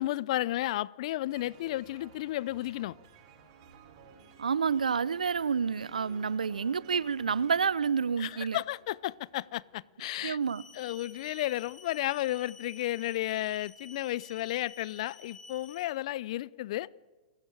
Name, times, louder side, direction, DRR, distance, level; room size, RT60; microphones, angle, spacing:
voice 1, 0.0-3.0 8.2-10.4 10.7-16.9, left 15 dB, 55° left, 0.6 m, -33 dB
sound 1, 1.3-9.8, right 5 dB, 50° right, 6.1 m, -56 dB
voice 2, 4.4-8.6 10.2-10.6, right 6 dB, 85° right, 0.7 m, -29 dB
sound 2, 10.4-15.8, left 3 dB, 20° left, 7.5 m, -51 dB
29.0 x 14.5 x 8.9 m
hypercardioid pair, 115°, 4 cm